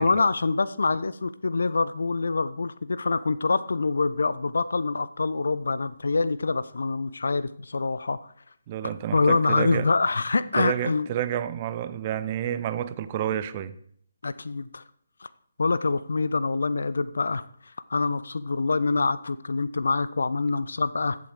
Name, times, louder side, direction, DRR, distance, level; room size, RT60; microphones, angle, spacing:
voice 1, 0.0-8.2 9.1-11.1 14.2-14.8 15.6-17.4 17.9-21.2, left 3 dB, 60° left, 0.6 m, -25 dB
voice 2, 8.7-9.9 10.6-13.8, right 10 dB, 30° right, 0.7 m, -29 dB
15.0 x 7.7 x 4.8 m
figure-of-eight pair, 140°, 0 cm